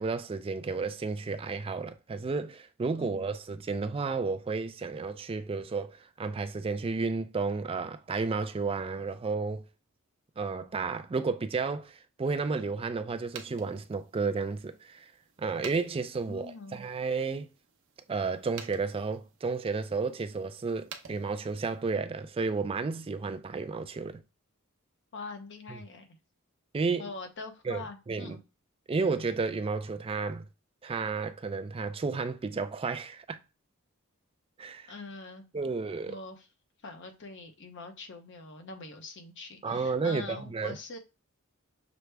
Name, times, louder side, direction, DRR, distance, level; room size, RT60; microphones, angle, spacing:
voice 1, 0.0-9.6 10.4-15.0 15.4-17.5 18.1-24.2 25.7-25.8 26.7-27.0 27.7-28.4 28.9-30.4 30.8-33.4 34.6-34.9 35.5-36.2 39.6-40.8, right 4 dB, 25° right, 0.4 m, -32 dB
voice 2, 3.0-3.3 16.3-16.8 25.1-26.1 27.0-28.4 34.9-35.4 36.1-36.5 36.8-41.0, left 3 dB, 60° left, 0.8 m, -43 dB
sound 1, 13.2-21.9, right 7 dB, 60° right, 0.8 m, -51 dB
6.1 x 2.1 x 3.3 m
head